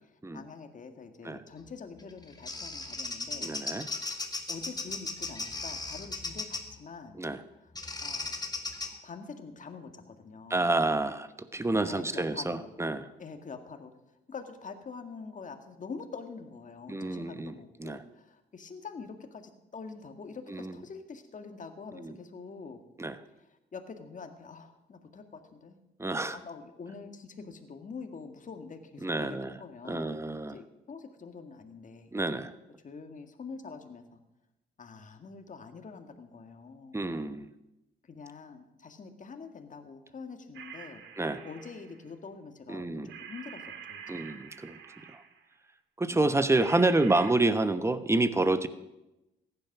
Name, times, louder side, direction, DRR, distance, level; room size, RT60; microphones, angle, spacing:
voice 1, 0.3-3.5 4.5-7.2 8.0-8.4 9.0-10.8 11.8-12.7 13.2-13.9 14.3-22.8 23.7-25.8 26.3-30.2 30.5-32.1 32.8-34.2 34.8-37.1 38.1-41.0 41.4-43.6 43.9-44.3 46.1-46.4, left 5 dB, 40° left, 6 dB, 1.9 m, -45 dB
Bird vocalization bird call bird song, 2.0-6.7 7.8-8.9, left 3 dB, 20° left, 1.7 m, -36 dB
voice 2, 3.4-3.9 7.1-7.4 10.5-13.1 16.9-18.0 20.5-20.7 21.9-22.2 23.0-23.2 26.0-26.4 29.0-29.6 29.8-30.6 32.1-32.5 36.9-37.5 41.2-41.4 42.7-43.2 44.1-44.8 45.1-45.2 46.0-48.7, right 2 dB, 15° right, 12 dB, 1.0 m, -28 dB
sound 1, 40.5-42.1 43.1-45.5 46.5-47.3, right 7 dB, 75° right, 1.8 m, -47 dB
15.0 x 11.0 x 6.0 m, 0.96 s
cardioid pair, 90°, 20 cm